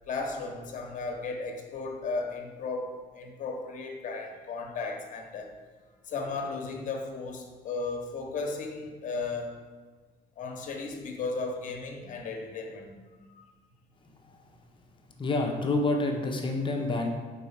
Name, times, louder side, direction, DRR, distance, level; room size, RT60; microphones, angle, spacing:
voice 1, 0.1-5.5 6.0-9.5 10.4-12.9 13.4-13.5, left 3 dB, 50° left, 3 dB, 1.1 m, -35 dB
voice 2, 15.2-17.1, left 2 dB, 30° left, 2 dB, 0.8 m, -27 dB
4.6 x 4.2 x 5.7 m, 1.4 s
cardioid pair, 110°, 17 cm